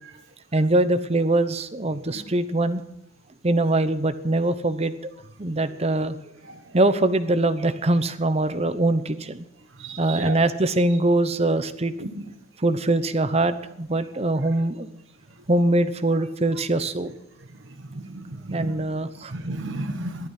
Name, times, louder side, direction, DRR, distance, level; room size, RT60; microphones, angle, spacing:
voice 1, 0.5-2.8 3.4-4.9 5.4-6.2 6.7-9.4 10.0-11.9 12.6-14.9 15.5-17.1 18.5-19.3, right 2 dB, 35° right, 12 dB, 0.9 m, -22 dB
voice 2, 9.8-10.4 12.0-12.2 17.8-18.9 19.3-20.3, right 2 dB, 80° right, 8 dB, 1.3 m, -33 dB
15.0 x 12.5 x 5.8 m, 0.84 s
head